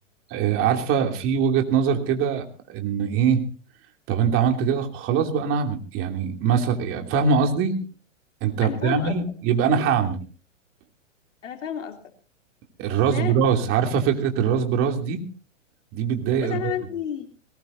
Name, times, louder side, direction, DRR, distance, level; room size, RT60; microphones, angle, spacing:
voice 1, 0.3-3.4 4.1-7.8 8.4-10.2 12.8-15.2 15.9-16.7, right 7 dB, 35° right, 4 dB, 2.8 m, -22 dB
voice 2, 8.6-9.2 11.4-12.0 12.9-13.3 16.4-17.3, left 9 dB, 75° left, 4 dB, 3.2 m, -31 dB
21.0 x 19.0 x 2.7 m, 0.36 s
hypercardioid pair, 125°, 38 cm